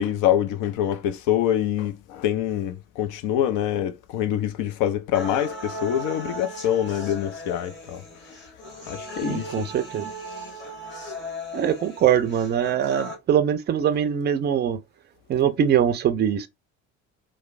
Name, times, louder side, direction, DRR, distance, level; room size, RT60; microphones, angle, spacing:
voice 1, 0.0-8.4 8.9-9.7, left 11 dB, 50° left, 0.5 m, -25 dB
sound 1, 5.1-13.1, equal, 25° left, 1.3 m, -37 dB
voice 2, 9.2-10.1 11.5-14.8 15.3-16.5, right 9 dB, 25° right, 0.4 m, -22 dB
3.0 x 2.0 x 2.4 m
figure-of-eight pair, 50°, 41 cm